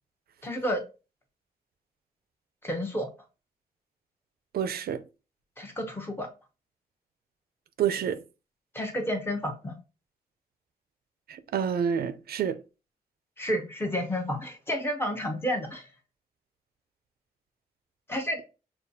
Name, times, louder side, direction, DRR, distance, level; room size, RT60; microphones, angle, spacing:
voice 1, 0.4-0.8 2.6-3.1 5.6-6.3 8.7-9.8 13.4-15.9 18.1-18.4, equal, 15° left, 0.8 m, -30 dB
voice 2, 4.5-5.0 7.8-8.2 11.3-12.6, right 8 dB, 80° right, 0.5 m, -28 dB
6.5 x 2.3 x 2.7 m
wide cardioid pair, 175°, 16 cm